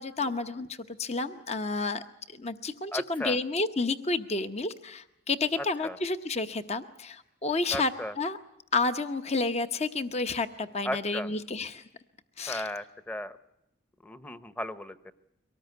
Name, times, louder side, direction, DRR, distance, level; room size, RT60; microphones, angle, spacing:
voice 1, 0.0-7.9 8.2-8.4 8.7-11.8 12.4-12.7, left 3 dB, 35° left, 9 dB, 0.9 m, -30 dB
voice 2, 2.9-3.4 5.6-6.0 7.7-8.1 10.8-11.3 12.5-13.4 14.0-15.1, left 1 dB, 10° left, 13 dB, 0.9 m, -35 dB
24.0 x 19.0 x 9.5 m, 0.81 s
head